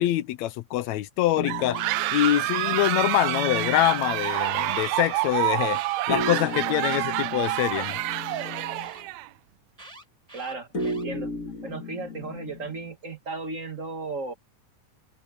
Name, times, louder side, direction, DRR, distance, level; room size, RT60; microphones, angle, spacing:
voice 1, 0.0-1.8 2.1-5.8 6.1-8.0, left 14 dB, 75° left, 1.8 m, -25 dB
sound 1, 1.4-4.5 6.1-9.0 10.7-12.9, left 2 dB, 30° left, 1.9 m, -35 dB
sound 2, 1.4-9.3, right 18 dB, 80° right, 1.6 m, -28 dB
Alarm, 1.6-3.0 3.7-5.0 5.7-7.0 7.8-9.0 9.8-11.0, right 1 dB, 10° right, 4.4 m, -48 dB
voice 2, 10.3-11.3 11.6-14.3, right 3 dB, 40° right, 1.2 m, -35 dB
omnidirectional pair, 3.6 m